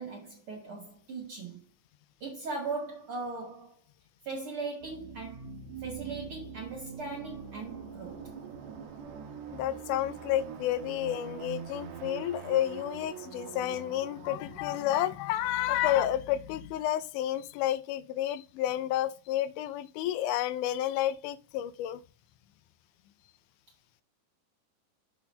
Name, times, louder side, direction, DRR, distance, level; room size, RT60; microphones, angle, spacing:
voice 1, 0.0-1.7 2.2-3.8 4.2-5.5 5.8-8.3, right 3 dB, 55° right, 1.8 m, -39 dB
sound 1, 4.8-16.3, right 7 dB, 70° right, 1.9 m, -44 dB
voice 2, 9.5-22.0, left 12 dB, 80° left, 2.0 m, -30 dB
7.1 x 3.9 x 5.2 m
omnidirectional pair, 3.7 m